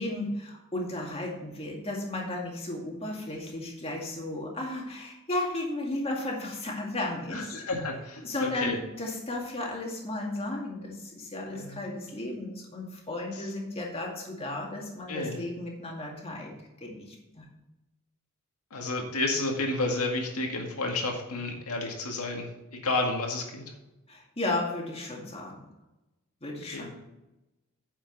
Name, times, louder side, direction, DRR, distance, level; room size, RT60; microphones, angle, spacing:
voice 1, 0.0-7.6 8.2-16.5 16.8-17.5 24.1-25.6 26.4-26.9, left 2 dB, 25° left, -1 dB, 2.2 m, -34 dB
voice 2, 7.3-8.2 8.6-8.8 11.5-11.8 15.1-15.4 18.7-23.6 26.7-26.8, left 2 dB, 75° left, 2 dB, 1.9 m, -31 dB
9.3 x 7.1 x 4.1 m, 0.99 s
head